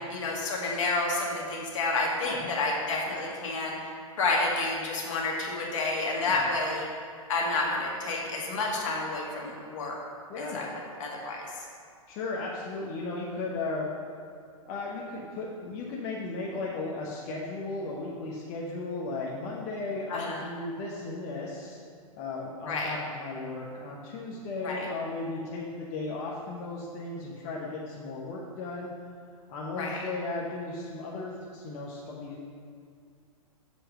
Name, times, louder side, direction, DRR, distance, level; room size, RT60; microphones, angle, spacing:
voice 1, 0.0-3.8 4.2-6.9 7.3-10.0 10.4-10.7 11.0-11.5 20.1-20.5 22.7-22.9 24.6-24.9 29.8-30.0, left 2 dB, 60° left, -1 dB, 1.8 m, -30 dB
voice 2, 12.1-13.9 14.7-21.8 22.2-28.9 29.5-32.4, left 3 dB, 40° left, -3 dB, 1.1 m, -35 dB
7.2 x 4.4 x 6.5 m, 2.2 s
hypercardioid pair, 120°, 18 cm